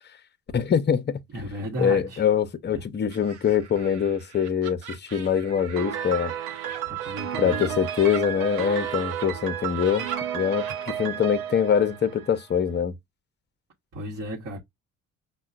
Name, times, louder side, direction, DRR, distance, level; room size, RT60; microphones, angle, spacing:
voice 1, 0.5-1.2 1.8-6.3 7.4-10.1 10.3-13.0, left 7 dB, 30° left, 0.7 m, -24 dB
voice 2, 1.3-2.2 2.7-2.9 6.8-7.8 13.9-14.6, equal, 45° right, 1.1 m, -34 dB
Laughter, 3.1-9.3 9.6-10.8, right 8 dB, 90° right, 1.0 m, -41 dB
Piano, 5.8-12.6, right 10 dB, 70° right, 0.7 m, -32 dB
5.4 x 2.3 x 2.4 m
hypercardioid pair, 60°, 35 cm